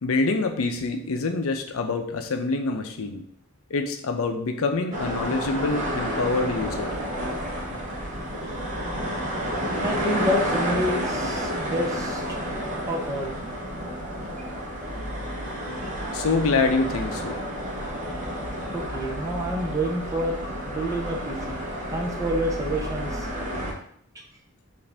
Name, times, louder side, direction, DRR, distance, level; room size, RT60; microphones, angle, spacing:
voice 1, 0.0-3.2 3.7-6.9 16.1-17.4, left 3 dB, 70° left, 6 dB, 0.5 m, -26 dB
sound 1, 4.9-23.7, equal, 35° right, 0.9 m, -30 dB
voice 2, 9.8-12.2 12.9-13.4 18.7-21.6 21.9-23.3, equal, 15° right, 0 dB, 0.6 m, -28 dB
5.0 x 2.6 x 3.3 m, 0.63 s
head